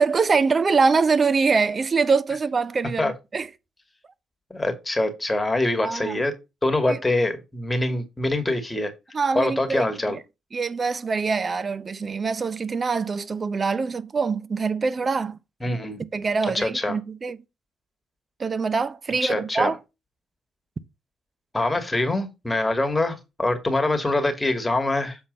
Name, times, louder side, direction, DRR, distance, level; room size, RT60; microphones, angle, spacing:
voice 1, 0.0-3.5 5.8-6.2 6.9-7.0 9.1-10.2 10.5-15.4 16.0-17.4 18.4-19.8, right 4 dB, 40° right, 0.8 m, -24 dB
voice 2, 4.5-6.3 6.6-8.9 9.4-10.2 15.6-16.0 16.5-17.0 19.2-19.7 21.5-25.2, left 2 dB, 15° left, 2.3 m, -24 dB
7.8 x 4.3 x 5.4 m
hypercardioid pair, 50°, 0 cm